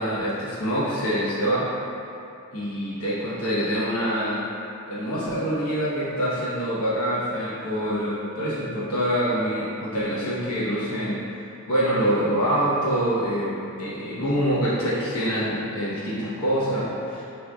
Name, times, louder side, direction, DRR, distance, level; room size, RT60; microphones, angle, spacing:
voice 1, 0.0-1.7 2.5-4.5 4.9-11.2 11.7-17.2, equal, 75° left, -8 dB, 1.1 m, -25 dB
5.2 x 3.1 x 2.4 m, 2.8 s
head